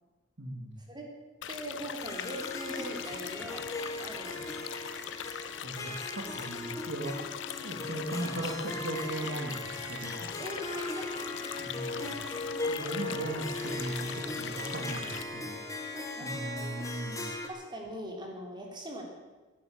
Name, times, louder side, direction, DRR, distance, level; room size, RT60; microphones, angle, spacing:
voice 1, 0.4-0.7 5.6-7.2 7.6-10.3 11.6-12.1 12.7-15.6 16.2-17.3, right 1 dB, 65° right, -1 dB, 2.3 m, -38 dB
sound 1, 1.4-15.2, left 10 dB, 70° left, 0.6 m, -41 dB
voice 2, 1.5-3.7 4.0-4.8 10.4-13.0 16.2-16.8 17.5-19.0, equal, 25° right, 0 dB, 3.6 m, -42 dB
Harp, 2.0-17.5, left 1 dB, 15° left, 1.9 m, -39 dB
15.5 x 10.5 x 8.7 m, 1.2 s
head